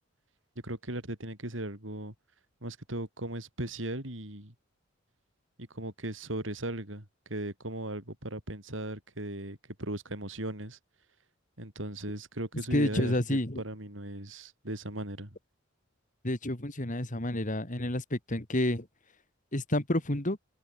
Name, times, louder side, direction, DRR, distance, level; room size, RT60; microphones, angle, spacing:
voice 1, 0.6-2.1 2.6-4.5 5.6-10.8 11.6-15.4, right 1 dB, 70° right, 5.0 m, -37 dB
voice 2, 12.7-13.6 16.2-18.9 19.5-20.4, left 1 dB, 40° left, 2.8 m, -29 dB
open air
head